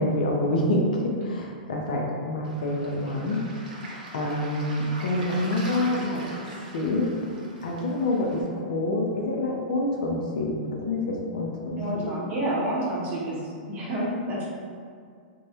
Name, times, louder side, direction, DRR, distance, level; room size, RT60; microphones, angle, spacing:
voice 1, 0.0-3.4 3.8-6.2 6.7-7.1 7.6-12.1, left 1 dB, 65° left, 0 dB, 0.4 m, -27 dB
Waves surf, 2.4-8.4, right 1 dB, 70° right, 0.6 m, -42 dB
voice 2, 11.7-14.5, right 1 dB, 30° right, -6 dB, 0.7 m, -29 dB
2.2 x 2.0 x 2.8 m, 2.1 s
hypercardioid pair, 105°, 5 cm